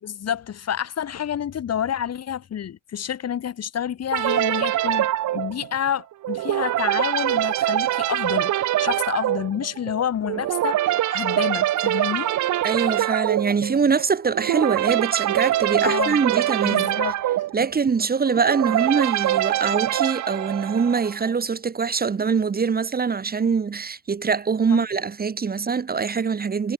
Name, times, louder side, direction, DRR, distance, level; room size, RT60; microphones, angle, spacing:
voice 1, 0.0-12.3 15.8-16.2 16.6-17.1 24.7-24.8, left 9 dB, 55° left, 2.5 m, -29 dB
sound 1, 4.1-21.3, right 13 dB, 70° right, 1.1 m, -24 dB
voice 2, 12.6-16.9 17.5-26.7, right 5 dB, 30° right, 1.2 m, -23 dB
cardioid pair, 90°, 30 cm